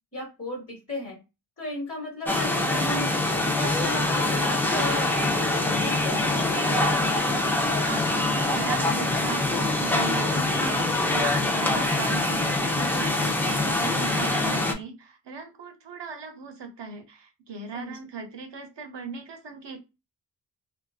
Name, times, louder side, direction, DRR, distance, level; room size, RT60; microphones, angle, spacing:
voice 1, 0.1-1.2 1.6-3.1 3.5-6.9 17.7-18.0, left 1 dB, 30° left, 1.1 m, -35 dB
sound 1, 2.3-14.7, left 2 dB, 5° left, 0.4 m, -24 dB
voice 2, 7.6-19.8, right 5 dB, 75° right, 0.7 m, -38 dB
2.5 x 2.3 x 2.3 m
wide cardioid pair, 90°, 43 cm